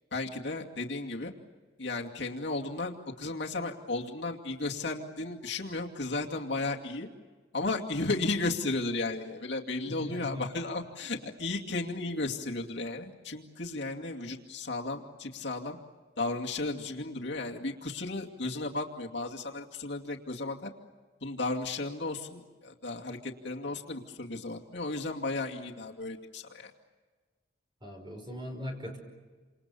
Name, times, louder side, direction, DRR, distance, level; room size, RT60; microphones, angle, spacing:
voice 1, 0.1-1.3 1.8-7.1 7.5-15.8 16.2-20.7 21.2-26.7, left 2 dB, 70° left, 0 dB, 2.5 m, -34 dB
voice 2, 9.9-10.5 27.8-29.0, left 1 dB, 25° right, 3 dB, 5.5 m, -39 dB
28.5 x 27.5 x 7.0 m, 1.4 s
head